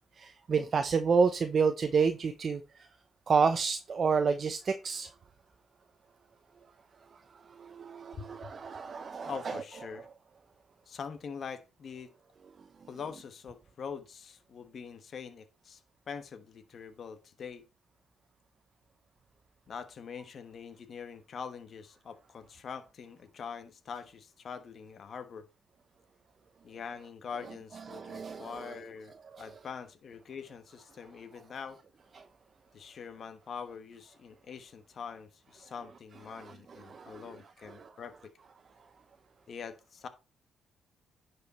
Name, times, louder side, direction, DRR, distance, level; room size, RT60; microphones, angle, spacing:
voice 1, 0.2-2.9 3.3-5.1 7.5-9.6 27.9-28.7 29.3-29.4 32.1-32.2 36.4-36.5 36.9-37.3 37.8-37.9, right 5 dB, 45° right, 0.7 m, -29 dB
voice 2, 8.1-8.5 9.2-10.1 10.9-12.1 12.9-15.8 16.1-17.7 19.7-25.5 26.6-31.8 32.7-38.1 39.5-40.1, left 6 dB, 55° left, 1.3 m, -44 dB
10.5 x 4.9 x 4.2 m
cardioid pair, 90°, 0 cm